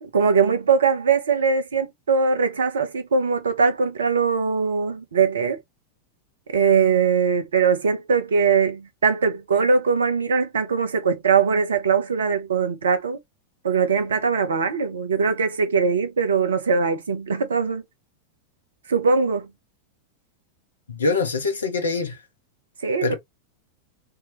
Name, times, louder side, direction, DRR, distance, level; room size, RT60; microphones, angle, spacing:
voice 1, 0.0-5.6 6.5-13.2 13.6-17.8 18.9-19.5 22.8-23.1, right 5 dB, 70° right, 0.9 m, -21 dB
voice 2, 20.9-22.2 23.0-23.1, left 3 dB, 70° left, 1.0 m, -24 dB
3.3 x 2.9 x 3.1 m
figure-of-eight pair, 90°, 0 cm